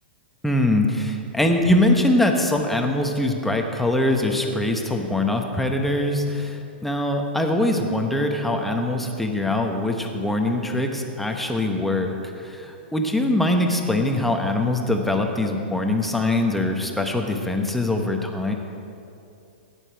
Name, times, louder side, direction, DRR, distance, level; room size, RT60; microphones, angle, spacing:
voice 1, 0.4-18.5, left 1 dB, 5° left, 3 dB, 1.1 m, -23 dB
15.0 x 10.0 x 4.7 m, 2.6 s
hypercardioid pair, 125°, 6 cm